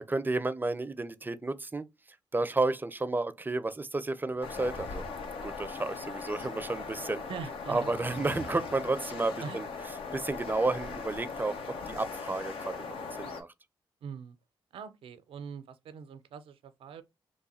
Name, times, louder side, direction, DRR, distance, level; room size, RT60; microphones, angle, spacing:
voice 1, 0.0-1.9 2.3-5.0 5.4-7.2 7.7-9.7 10.1-13.5, right 2 dB, 20° right, 0.5 m, -32 dB
sound 1, 4.2-6.0 7.8-8.8, right 1 dB, 50° left, 1.5 m, -48 dB
sound 2, 4.4-13.4, left 4 dB, 75° left, 0.7 m, -39 dB
voice 2, 7.3-7.9 9.4-9.6 14.0-14.4 14.7-17.0, right 7 dB, 80° right, 0.5 m, -42 dB
3.1 x 2.2 x 4.2 m
cardioid pair, 55°, 9 cm